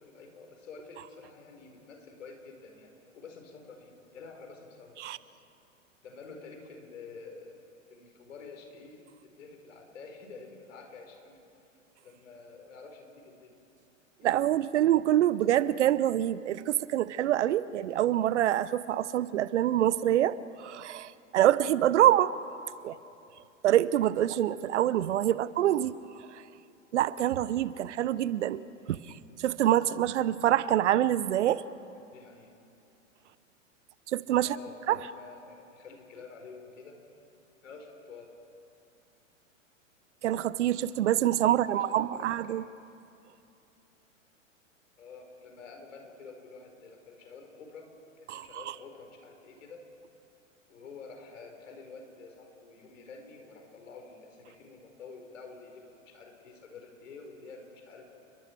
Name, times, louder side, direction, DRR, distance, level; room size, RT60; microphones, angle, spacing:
voice 1, 0.0-2.9 3.1-5.1 6.0-7.6 7.9-11.4 12.0-13.5 22.8-23.1 25.4-25.5 28.8-29.1 31.9-32.5 34.4-37.0 37.6-38.3 41.7-42.7 45.0-47.9 48.2-49.8 50.7-58.1, left 4 dB, 70° left, 3 dB, 4.5 m, -49 dB
voice 2, 14.2-22.3 22.8-22.9 23.6-26.0 26.3-26.4 26.9-28.6 28.9-29.0 29.4-31.6 34.1-34.6 34.9-35.0 40.2-42.6 48.3-48.5, right 12 dB, 60° right, 18 dB, 0.8 m, -26 dB
30.0 x 21.5 x 4.6 m, 2.7 s
figure-of-eight pair, 100°, 39 cm